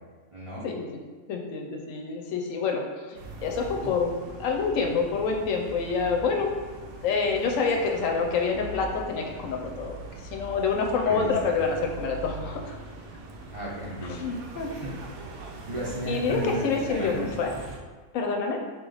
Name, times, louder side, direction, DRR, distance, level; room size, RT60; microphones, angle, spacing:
voice 1, 0.3-0.7 3.8-3.9 11.0-11.3 13.5-14.1 14.5-14.9 15.7-16.6 16.9-17.2, right 1 dB, 35° right, -7 dB, 0.5 m, -34 dB
voice 2, 1.3-4.1 4.4-6.5 7.0-10.0 10.3-12.8 14.0-14.7 16.1-17.5 18.1-18.6, left 5 dB, 75° left, 2 dB, 0.9 m, -27 dB
sound 1, 3.2-17.8, right 2 dB, 85° right, 1.1 m, -41 dB
4.1 x 2.9 x 3.8 m, 1.4 s
omnidirectional pair, 1.5 m